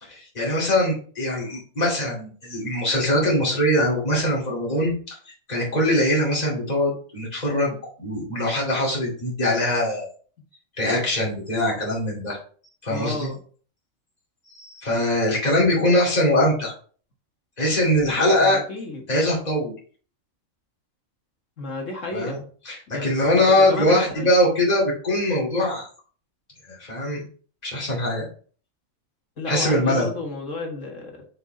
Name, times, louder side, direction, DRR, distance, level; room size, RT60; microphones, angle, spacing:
voice 1, 0.0-5.2 5.5-10.1 10.8-12.4 12.8-13.3 14.5-16.7 17.6-18.6 19.1-19.7 22.1-22.4 22.7-25.9 26.7-27.2 27.6-28.3 29.5-30.1, left 1 dB, 30° left, -5 dB, 2.7 m, -22 dB
voice 2, 12.9-13.4 18.4-19.0 21.6-22.4 22.9-24.3 29.4-31.3, left 2 dB, 65° left, 1 dB, 2.1 m, -32 dB
6.5 x 5.0 x 3.9 m, 0.43 s
omnidirectional pair, 1.4 m